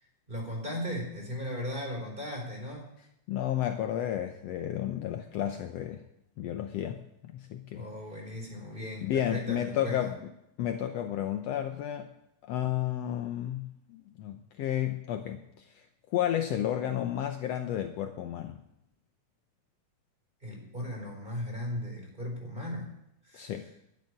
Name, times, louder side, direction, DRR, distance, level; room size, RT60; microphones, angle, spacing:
voice 1, 0.3-3.0 7.7-10.1 20.4-22.9 23.2-23.5, left 1 dB, 15° right, 0 dB, 3.9 m, -37 dB
voice 2, 3.3-6.0 6.4-7.9 9.0-10.1 10.6-12.1 12.4-18.6 23.3-23.7, left 11 dB, 85° left, 6 dB, 1.4 m, -32 dB
11.0 x 9.2 x 9.7 m, 0.81 s
omnidirectional pair, 3.9 m